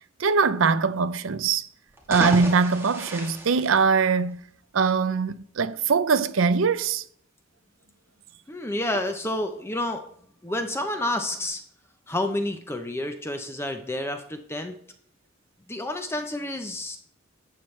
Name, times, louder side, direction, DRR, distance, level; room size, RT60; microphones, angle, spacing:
voice 1, 0.2-1.7 2.1-4.4 4.7-7.0, right 5 dB, 85° right, 0.6 m, -22 dB
sound 1, 1.9-4.5, right 1 dB, 15° right, 1.5 m, -33 dB
voice 2, 8.5-10.0 10.4-11.6 12.1-14.8 15.7-17.0, left 1 dB, 15° left, 0.7 m, -29 dB
11.5 x 7.6 x 3.2 m
head